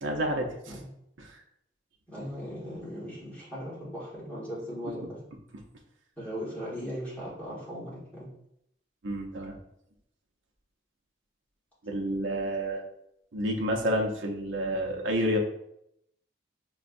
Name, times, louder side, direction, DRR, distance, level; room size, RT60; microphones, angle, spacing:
voice 1, 0.0-0.8 1.2-1.4 9.0-9.5 11.8-12.9 13.3-15.4, equal, 75° right, 1 dB, 0.6 m, -29 dB
voice 2, 2.1-5.2 6.2-8.3, equal, 10° left, -9 dB, 1.3 m, -38 dB
5.3 x 2.2 x 2.5 m, 0.77 s
head